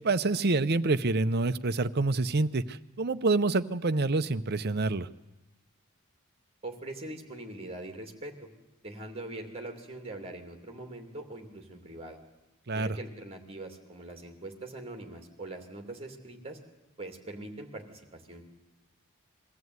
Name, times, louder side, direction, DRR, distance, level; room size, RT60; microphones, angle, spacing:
voice 1, 0.0-5.1 12.7-13.0, right 3 dB, 45° right, 11 dB, 0.7 m, -27 dB
voice 2, 6.6-8.5 8.8-12.2 12.7-16.6 17.0-18.4, right 2 dB, 25° right, 5 dB, 2.7 m, -42 dB
22.5 x 14.5 x 9.5 m, 1.0 s
head